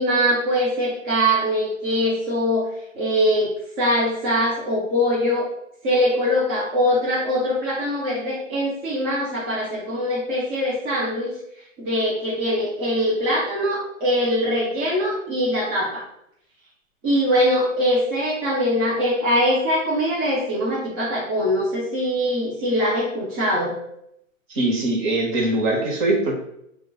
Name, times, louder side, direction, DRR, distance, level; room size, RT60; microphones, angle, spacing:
voice 1, 0.0-2.7 2.9-3.5 3.8-5.5 5.8-11.3 11.8-16.0 17.0-23.7, equal, 15° right, -7 dB, 0.4 m, -22 dB
voice 2, 24.5-26.3, right 2 dB, 35° right, 0 dB, 1.0 m, -22 dB
5.0 x 2.3 x 2.3 m, 0.76 s
hypercardioid pair, 135°, 39 cm